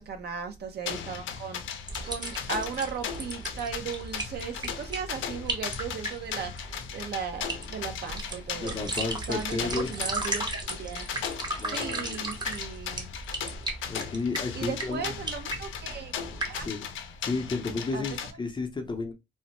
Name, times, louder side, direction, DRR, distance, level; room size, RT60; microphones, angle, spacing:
voice 1, 0.0-11.1 11.6-13.1 14.5-16.2 16.5-16.7 17.9-18.1, right 6 dB, 55° right, 0.7 m, -37 dB
sound 1, 0.9-18.3, left 8 dB, 75° left, 0.5 m, -37 dB
sound 2, 1.9-16.7, right 2 dB, 20° right, 0.7 m, -36 dB
voice 2, 8.6-9.9 11.6-12.3 13.9-15.1 16.6-16.9 17.2-19.1, left 3 dB, 25° left, 0.6 m, -32 dB
3.1 x 2.0 x 2.9 m
cardioid pair, 90°, 20 cm